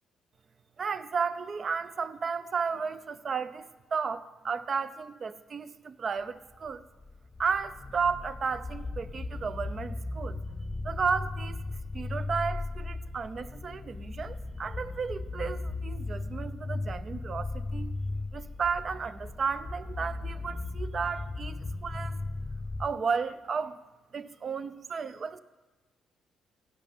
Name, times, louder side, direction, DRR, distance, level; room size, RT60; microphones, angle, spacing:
voice 1, 0.8-6.8 7.4-10.4 10.8-11.6 11.9-18.0 18.3-22.2 22.8-23.8 24.1-25.4, right 5 dB, 45° right, 13 dB, 0.7 m, -33 dB
sound 1, 6.5-22.9, left 2 dB, 25° left, 0.7 m, -37 dB
16.0 x 6.2 x 9.0 m, 1.2 s
cardioid pair, 90°, 0 cm